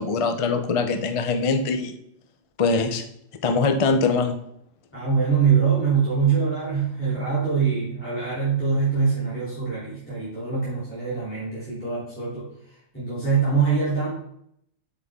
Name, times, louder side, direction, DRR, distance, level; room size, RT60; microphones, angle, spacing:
voice 1, 0.0-1.9 2.6-3.0 3.4-4.4, left 4 dB, 35° left, 6 dB, 0.5 m, -22 dB
voice 2, 4.9-12.5 12.9-14.1, right 6 dB, 10° left, -11 dB, 3.4 m, -23 dB
8.4 x 6.9 x 3.6 m, 0.72 s
omnidirectional pair, 1.4 m